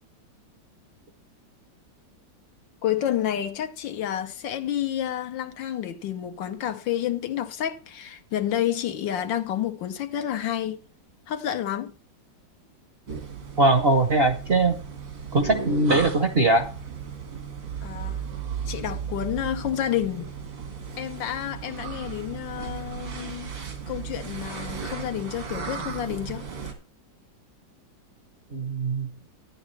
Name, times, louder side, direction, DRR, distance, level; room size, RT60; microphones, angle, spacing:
voice 1, 2.8-10.8 11.3-11.9 17.8-18.2 18.7-20.3 21.0-23.5 23.9-26.4, left 11 dB, 75° left, 1.5 m, -29 dB
sound 1, 13.1-26.7, right 6 dB, 85° right, 2.6 m, -35 dB
voice 2, 13.6-14.8 15.3-16.7 28.5-29.1, right 2 dB, 45° right, 0.8 m, -21 dB
11.0 x 10.5 x 3.2 m
omnidirectional pair, 2.1 m